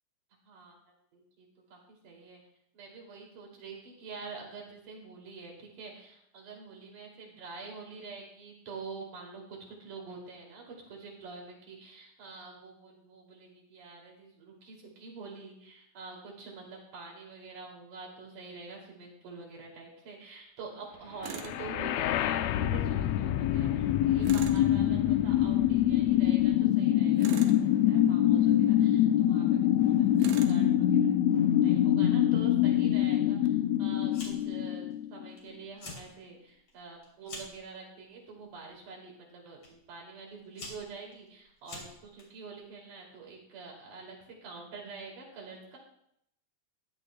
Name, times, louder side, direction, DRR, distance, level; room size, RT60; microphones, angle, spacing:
voice 1, 0.5-0.8 1.1-2.4 2.7-31.2 31.6-34.8 35.1-45.8, right 4 dB, 85° right, -1 dB, 4.3 m, -47 dB
Tools, 21.2-21.6 24.2-24.7 27.2-27.6 30.2-30.6, right 6 dB, 65° right, 1.9 m, -40 dB
sound 1, 21.4-35.3, left 11 dB, 80° left, 1.6 m, -25 dB
Fire, 34.1-34.6 34.9-35.4 35.7-36.1 36.5-37.6 38.4-38.7 39.6-39.7 40.3-42.2, left 2 dB, 55° left, 4.3 m, -45 dB
16.0 x 11.5 x 2.2 m, 0.74 s
omnidirectional pair, 3.5 m